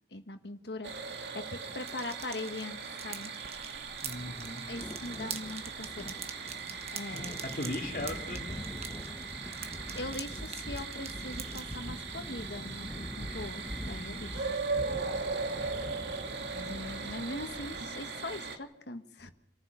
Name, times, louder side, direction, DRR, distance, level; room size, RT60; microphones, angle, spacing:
voice 1, 0.1-2.8 3.0-3.3 4.7-6.1 6.9-7.4 9.9-14.5 16.5-19.3, left 2 dB, 65° left, 7 dB, 1.4 m, -41 dB
sound 1, 0.8-18.6, right 4 dB, 75° right, 2.2 m, -39 dB
sound 2, 1.7-11.8, right 7 dB, 35° right, 1.4 m, -45 dB
sound 3, 3.9-17.8, left 1 dB, 20° left, 0.8 m, -44 dB
voice 2, 4.0-4.7 7.4-8.6 15.5-16.0 17.0-17.1, left 1 dB, 50° left, 2 dB, 2.7 m, -39 dB
27.0 x 14.5 x 6.8 m, 0.88 s
head